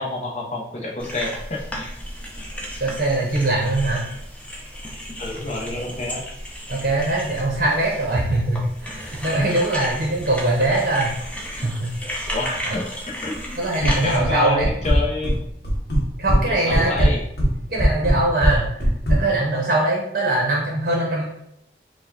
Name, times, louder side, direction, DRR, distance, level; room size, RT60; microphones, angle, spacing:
voice 1, 0.0-1.9 5.2-6.2 12.3-13.6 14.0-15.4 16.5-17.2, left 2 dB, 40° left, -1 dB, 0.8 m, -28 dB
sound 1, 1.0-14.2, equal, 10° left, 0.6 m, -33 dB
voice 2, 2.8-4.1 6.7-11.2 11.6-11.9 12.6-12.7 13.6-14.7 16.2-16.9 17.7-18.7 19.1-21.2, right 2 dB, 60° right, -3 dB, 0.8 m, -22 dB
sound 2, 13.8-14.3 14.6-15.4 15.6-16.4 16.7-19.2, equal, 65° left, 1.0 m, -19 dB
4.7 x 2.3 x 3.9 m, 0.77 s
head